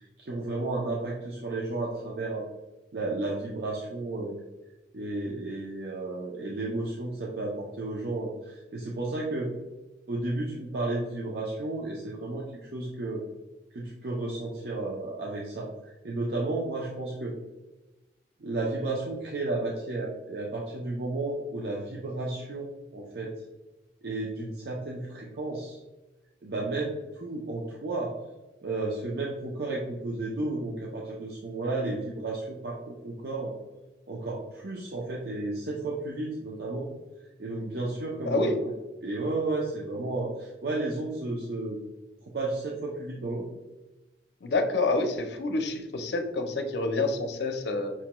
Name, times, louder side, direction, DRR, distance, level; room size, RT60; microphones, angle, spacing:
voice 1, 0.0-2.4 2.9-4.4 4.9-9.5 10.1-13.2 13.7-17.3 18.4-23.3 24.0-25.8 26.4-28.1 28.6-33.5 34.1-36.9 37.4-38.6 39.0-41.8 42.2-43.4, right 2 dB, 65° right, -3 dB, 0.5 m, -33 dB
voice 2, 38.3-38.6 44.4-47.9, left 2 dB, 70° left, 6 dB, 0.5 m, -28 dB
5.8 x 2.2 x 2.9 m, 1.1 s
head